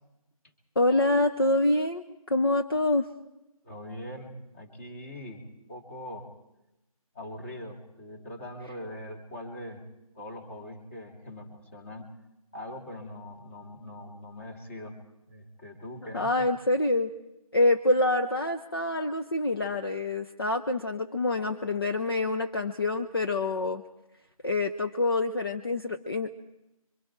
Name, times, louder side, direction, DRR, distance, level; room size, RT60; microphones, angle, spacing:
voice 1, 0.8-3.1 16.1-17.1 17.5-23.8 24.4-26.3, left 2 dB, 40° left, 7 dB, 1.0 m, -26 dB
voice 2, 3.6-6.3 7.1-9.8 10.1-12.1 12.5-15.0 15.3-16.3, left 1 dB, 20° left, 0 dB, 2.8 m, -42 dB
27.0 x 24.5 x 4.7 m, 0.91 s
figure-of-eight pair, 170°, 19 cm